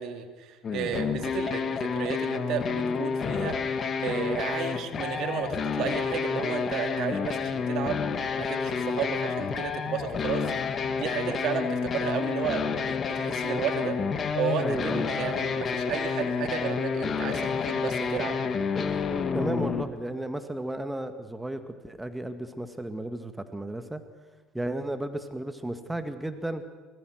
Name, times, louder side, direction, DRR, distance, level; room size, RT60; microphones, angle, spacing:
voice 1, 0.0-3.6 4.0-8.0 8.4-14.0 14.4-18.4, right 7 dB, 60° right, 7 dB, 2.4 m, -33 dB
sound 1, 0.6-19.8, left 5 dB, 40° left, 1.8 m, -29 dB
voice 2, 14.6-15.1 19.3-24.0 24.5-26.6, right 1 dB, 10° right, 9 dB, 1.9 m, -33 dB
24.0 x 21.0 x 6.4 m, 1.3 s
hypercardioid pair, 70°, 0 cm